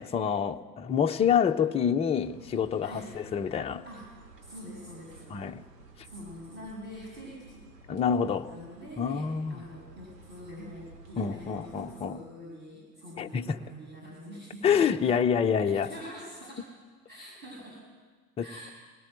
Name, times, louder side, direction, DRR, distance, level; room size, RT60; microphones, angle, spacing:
voice 1, 0.0-3.8 5.3-5.6 7.9-8.5 9.0-9.6 11.2-12.2 13.2-13.6 14.6-15.9 18.4-18.5, left 7 dB, 10° left, 0.7 m, -27 dB
sound 1, 2.2-12.1, right 2 dB, 70° right, 3.2 m, -53 dB
voice 2, 2.8-3.1 3.9-4.1 4.4-5.3 6.0-7.6 8.2-9.2 9.5-14.9 15.6-16.7 17.1-17.8 18.4-18.7, equal, 20° right, 7.3 m, -45 dB
23.5 x 18.5 x 9.0 m
figure-of-eight pair, 85°, 49 cm